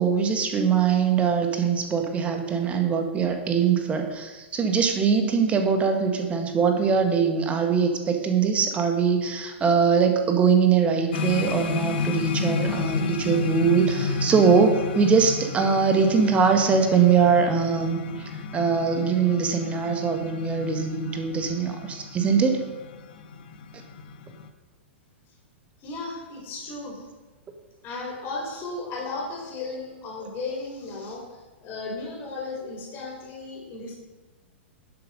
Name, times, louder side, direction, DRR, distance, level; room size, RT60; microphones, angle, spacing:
voice 1, 0.0-22.6, right 6 dB, 20° right, 5 dB, 1.5 m, -22 dB
sound 1, 11.1-24.5, left 5 dB, 55° left, 0.9 m, -32 dB
voice 2, 25.8-27.0 27.8-33.9, left 3 dB, 30° left, -1 dB, 3.8 m, -35 dB
10.5 x 7.9 x 5.3 m, 1.2 s
figure-of-eight pair, 100°, 7 cm